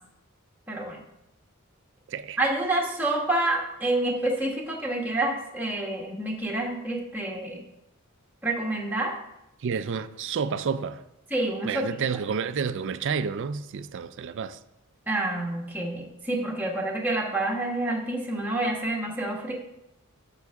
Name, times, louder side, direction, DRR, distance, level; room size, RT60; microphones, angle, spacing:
voice 1, 0.7-1.0 2.4-7.6 8.4-9.1 11.3-12.0 15.1-19.5, right 2 dB, 10° right, 1.3 m, -28 dB
voice 2, 9.6-11.0 11.6-14.6, right 6 dB, 55° right, 0.4 m, -30 dB
9.5 x 6.6 x 3.6 m
head